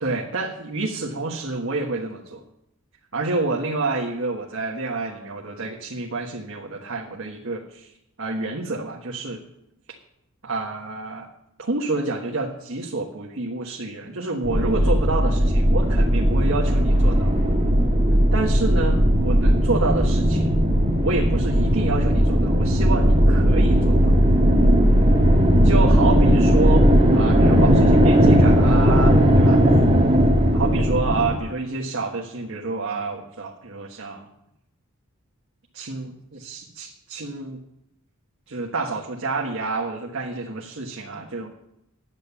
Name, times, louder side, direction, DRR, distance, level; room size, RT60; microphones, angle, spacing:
voice 1, 0.0-2.4 3.1-9.4 10.4-11.3 11.6-17.3 18.3-20.5 21.0-24.1 25.6-26.8 27.1-29.6 30.5-34.3 35.7-37.6 38.5-41.5, right 3 dB, 65° right, -2 dB, 1.4 m, -28 dB
sound 1, 14.4-31.4, equal, 30° right, 1.9 m, -17 dB
10.5 x 8.6 x 6.9 m, 0.82 s
head